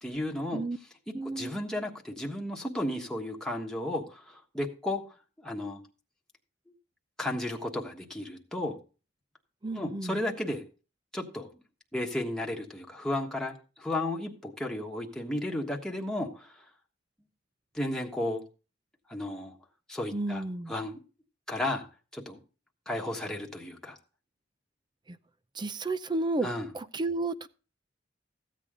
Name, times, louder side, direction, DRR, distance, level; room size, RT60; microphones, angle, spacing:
voice 1, 0.0-0.6 1.2-5.0 5.4-5.8 7.2-8.8 9.7-10.6 11.1-11.5 11.9-16.5 17.7-18.4 19.1-19.6 19.9-21.0 21.5-21.9 22.1-22.4 22.9-24.0 26.4-26.7, left 1 dB, 5° left, 1.3 m, -33 dB
voice 2, 1.1-1.6 9.6-10.2 20.1-20.7 25.1-25.2 25.6-26.5 26.7-27.5, right 2 dB, 25° right, 0.5 m, -32 dB
14.5 x 8.4 x 3.7 m
head